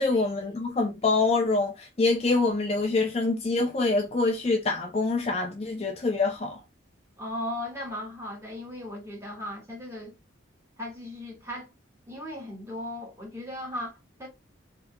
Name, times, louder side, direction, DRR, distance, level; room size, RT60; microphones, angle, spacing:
voice 1, 0.0-6.6, left 3 dB, 30° left, 0.4 m, -25 dB
voice 2, 7.2-10.1 10.8-11.7 12.1-14.3, left 1 dB, 15° right, 1.3 m, -37 dB
3.5 x 2.8 x 2.2 m
head